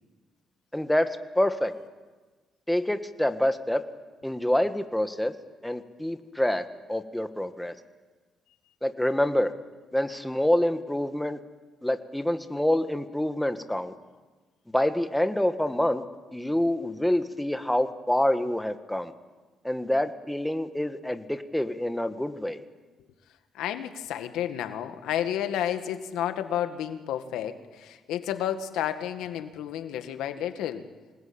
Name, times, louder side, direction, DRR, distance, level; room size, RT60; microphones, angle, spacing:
voice 1, 0.7-1.7 2.7-3.8 4.2-5.3 5.6-7.7 8.8-9.5 9.9-11.4 11.8-13.9 14.7-16.0 16.3-19.1 19.6-22.6, left 1 dB, 5° left, 8 dB, 1.8 m, -26 dB
voice 2, 23.5-30.9, left 10 dB, 90° left, 8 dB, 1.9 m, -31 dB
26.0 x 20.0 x 8.9 m, 1.3 s
cardioid pair, 90°, 0 cm